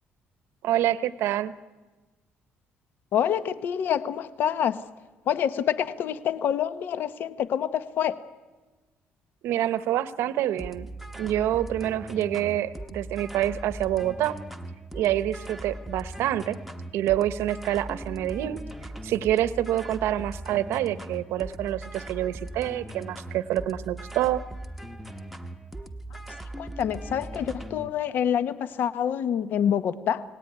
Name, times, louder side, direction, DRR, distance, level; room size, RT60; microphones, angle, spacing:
voice 1, 0.6-1.5 9.4-10.9 11.2-14.4 14.9-16.6 16.9-18.6 19.0-24.4, right 12 dB, 85° right, 14 dB, 1.0 m, -27 dB
voice 2, 3.1-4.8 5.3-8.2 26.6-30.2, left 9 dB, 55° left, 13 dB, 0.9 m, -27 dB
sound 1, 10.6-27.9, right 1 dB, ahead, 1.0 m, -39 dB
28.5 x 18.5 x 9.5 m, 1.2 s
cardioid pair, 175°, 4 cm